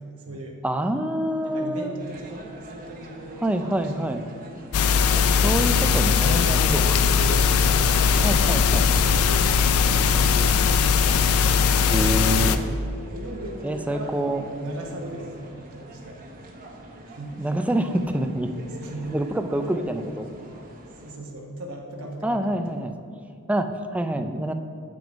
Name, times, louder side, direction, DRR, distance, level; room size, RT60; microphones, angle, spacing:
voice 1, 0.0-0.6 1.4-3.9 4.2-4.8 6.2-10.9 11.3-11.6 12.2-16.2 17.1-17.4 18.8-19.2 19.5-20.1 21.0-22.6, right 1 dB, 75° right, -1 dB, 1.0 m, -38 dB
voice 2, 0.6-2.0 3.4-4.2 5.2-7.0 8.2-8.9 11.9-12.6 13.6-14.4 17.4-18.5 19.1-20.3 22.2-22.9 23.5-24.5, right 1 dB, 5° right, 7 dB, 0.3 m, -26 dB
sound 1, 2.0-21.1, right 1 dB, 40° right, 1.1 m, -44 dB
sound 2, 4.7-12.6, left 6 dB, 80° left, 0.4 m, -20 dB
7.0 x 6.2 x 5.1 m, 2.3 s
head